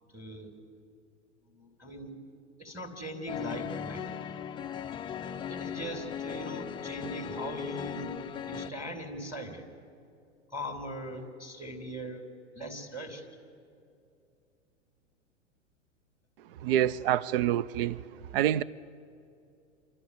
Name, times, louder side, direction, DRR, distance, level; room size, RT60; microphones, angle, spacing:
voice 1, 0.1-0.5 1.5-2.1 2.6-4.3 5.5-8.2 8.4-9.6 10.5-12.2 12.5-13.2, equal, 5° right, 1 dB, 2.7 m, -40 dB
sound 1, 3.3-8.7, left 8 dB, 15° left, 0.5 m, -38 dB
voice 2, 16.6-18.0 18.3-18.6, right 11 dB, 50° right, 19 dB, 0.6 m, -26 dB
27.0 x 12.5 x 9.5 m, 2.5 s
figure-of-eight pair, 100°, 37 cm